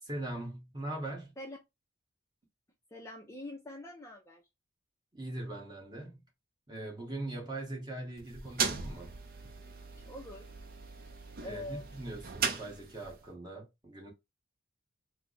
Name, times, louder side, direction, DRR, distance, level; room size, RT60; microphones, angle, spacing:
voice 1, 0.0-1.3 5.1-6.2 6.7-9.1 11.4-14.1, right 2 dB, 20° right, 1.3 m, -41 dB
voice 2, 2.9-4.4 10.1-10.5 11.4-11.8, left 1 dB, 15° left, 0.5 m, -44 dB
sound 1, 8.2-13.3, right 5 dB, 45° right, 0.5 m, -38 dB
3.3 x 2.1 x 3.7 m
head